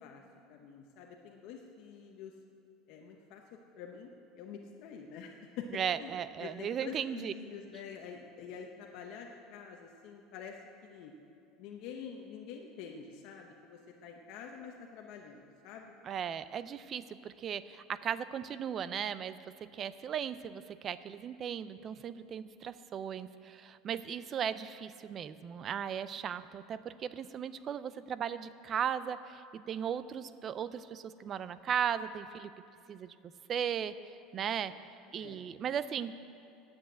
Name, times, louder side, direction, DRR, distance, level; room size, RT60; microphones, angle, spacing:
voice 1, 0.5-2.3 2.9-3.4 3.8-5.7 6.0-6.1 6.4-10.6 10.8-11.1 11.6-15.9 34.3-34.5 35.2-35.4, left 7 dB, 55° left, 2 dB, 0.9 m, -47 dB
voice 2, 5.7-7.3 16.0-32.5 32.9-33.1 33.5-34.7 35.1-36.2, right 8 dB, 30° right, 14 dB, 0.4 m, -37 dB
10.0 x 7.9 x 8.1 m, 2.5 s
cardioid pair, 160°, 0 cm